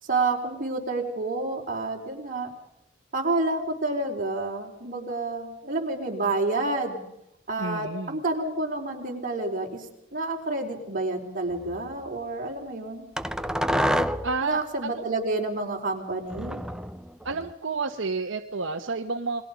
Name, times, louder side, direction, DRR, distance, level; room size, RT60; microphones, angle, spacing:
voice 1, 0.0-2.5 3.1-7.0 7.5-13.0 14.4-16.6, right 2 dB, 45° right, 1 dB, 4.3 m, -29 dB
voice 2, 7.6-8.2 14.2-15.0 17.2-19.4, right 4 dB, 75° right, 5 dB, 1.2 m, -30 dB
sound 1, 11.5-11.8 13.2-14.4 16.3-17.5, equal, 5° right, 0.8 m, -28 dB
28.5 x 21.5 x 5.2 m, 0.79 s
head